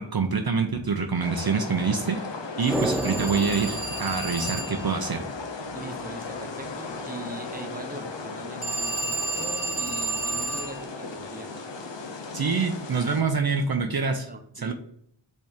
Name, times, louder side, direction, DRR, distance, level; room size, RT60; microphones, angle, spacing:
voice 1, 0.0-2.2 2.6-5.2 12.3-14.2 14.6-14.7, right 5 dB, 55° right, 5 dB, 0.6 m, -26 dB
sound 1, 1.2-13.2, left 3 dB, 65° left, 0.9 m, -36 dB
Telephone, 2.6-4.9 8.6-10.8, right 3 dB, 50° left, 2.0 m, -31 dB
sound 2, 2.7-5.2 5.5-5.6, right 1 dB, 5° right, 0.3 m, -32 dB
voice 2, 5.7-11.5 14.0-14.7, right 2 dB, 20° right, 5 dB, 0.8 m, -41 dB
5.3 x 3.5 x 5.1 m, 0.67 s
wide cardioid pair, 65°, 46 cm